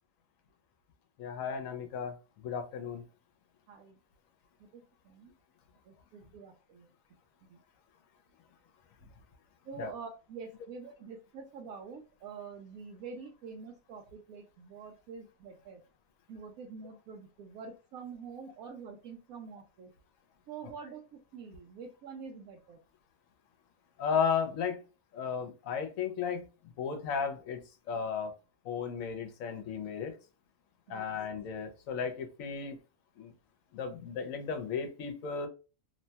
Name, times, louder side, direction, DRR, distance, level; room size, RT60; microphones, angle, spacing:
voice 1, 1.2-2.2 2.4-3.0 9.8-9.9 24.0-24.8 25.1-26.4 26.8-27.6 27.9-28.3 28.6-30.1 30.9-32.8 33.2-33.3 33.7-35.5, left 6 dB, 75° left, 6 dB, 1.0 m, -34 dB
voice 2, 3.7-4.0 4.6-5.3 5.9-6.9 7.5-7.6 9.7-15.8 16.3-19.9 20.5-22.8 30.9-31.1, right 5 dB, 80° right, 1 dB, 1.0 m, -46 dB
3.0 x 2.2 x 2.7 m, 0.32 s
omnidirectional pair, 1.5 m